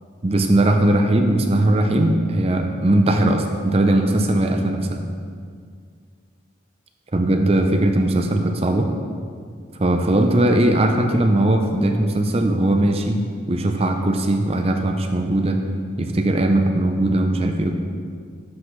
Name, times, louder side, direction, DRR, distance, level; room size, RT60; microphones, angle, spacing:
voice 1, 0.2-5.0 7.1-8.9 9.8-13.2 13.5-15.6 16.0-17.7, right 1 dB, 30° right, 5 dB, 0.6 m, -19 dB
12.0 x 7.6 x 3.2 m, 2.1 s
head